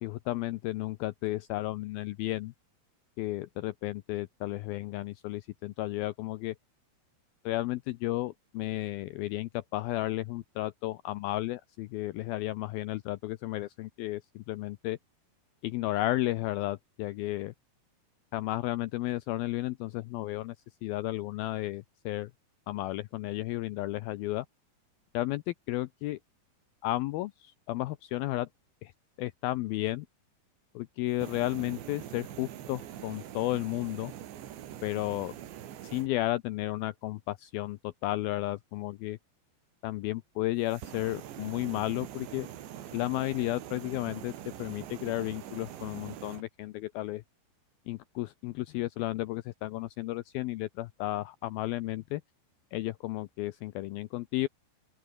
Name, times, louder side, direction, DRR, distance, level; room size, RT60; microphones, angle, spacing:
voice 1, 0.0-2.5 3.2-6.6 7.5-15.0 15.6-17.5 18.3-20.6 20.8-22.3 22.7-24.5 25.1-26.2 26.8-28.5 28.8-28.9 29.2-30.1 30.8-34.1 34.8-35.4 35.8-39.2 39.8-42.5 42.9-44.3 44.6-47.2 47.9-52.2 52.7-54.5, left 17 dB, 80° left, 2.2 m, -33 dB
sound 1, 31.1-36.1 40.6-46.4, right 11 dB, 90° right, 4.5 m, -44 dB
open air
omnidirectional pair, 5.0 m